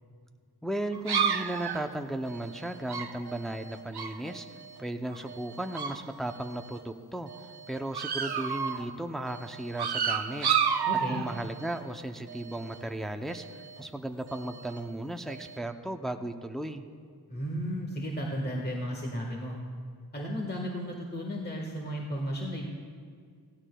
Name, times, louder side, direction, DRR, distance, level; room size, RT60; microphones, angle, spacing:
voice 1, 0.6-4.5 4.8-7.3 7.7-13.5 13.8-16.8, right 1 dB, ahead, 6 dB, 0.6 m, -35 dB
sound 1, 0.9-4.8 5.1-6.0 6.3-6.8 7.3-8.9 9.3-11.8 12.3-12.8 13.3-13.8 14.3-14.9 15.3-15.6, right 7 dB, 70° right, 0.8 m, -33 dB
voice 2, 10.9-11.2 17.3-19.6 20.1-22.7, equal, 25° left, -1 dB, 1.5 m, -34 dB
16.5 x 16.0 x 2.3 m, 2.1 s
wide cardioid pair, 65°, 40 cm